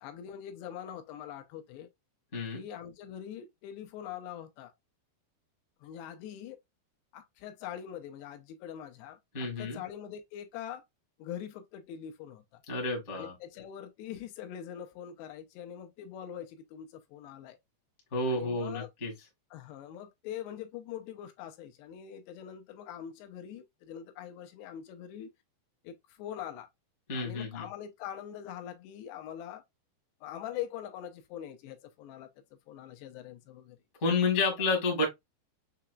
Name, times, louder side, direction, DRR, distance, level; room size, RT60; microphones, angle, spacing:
voice 1, 0.0-1.9 2.5-4.7 5.8-6.6 7.1-10.8 11.2-12.6 13.1-17.6 18.3-18.9 19.5-25.3 25.8-26.7 27.1-29.6 30.2-32.3 32.7-33.8 34.6-34.7, left 10 dB, 85° left, 2.7 m, -43 dB
voice 2, 9.3-9.8 12.7-13.3 18.1-19.1 27.1-27.6 34.0-35.0, left 3 dB, 40° left, 0.9 m, -30 dB
6.6 x 2.9 x 2.3 m
omnidirectional pair, 5.0 m